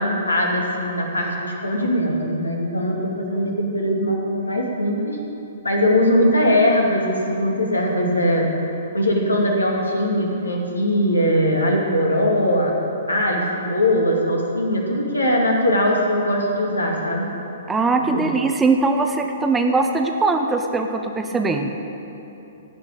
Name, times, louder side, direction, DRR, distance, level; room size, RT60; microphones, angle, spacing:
voice 1, 0.0-5.2 5.6-8.5 8.9-12.7 13.1-17.3 18.1-18.3, equal, 80° left, -1 dB, 2.5 m, -20 dB
voice 2, 17.7-21.7, right 3 dB, 10° right, 4 dB, 0.9 m, -20 dB
17.0 x 6.0 x 8.8 m, 2.9 s
figure-of-eight pair, 115°, 0 cm